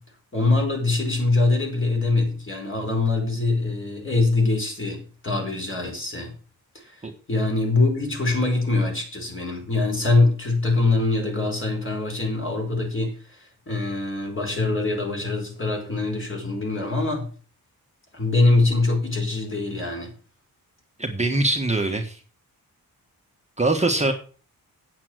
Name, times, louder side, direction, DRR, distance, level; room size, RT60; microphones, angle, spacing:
voice 1, 0.3-6.3 6.7-7.0 7.3-17.3 18.1-20.1, left 3 dB, 35° left, 4.4 m, -23 dB
voice 2, 21.0-22.2 23.6-24.1, right 2 dB, 20° right, 1.4 m, -22 dB
8.6 x 8.4 x 6.2 m
wide cardioid pair, 115°, 35 cm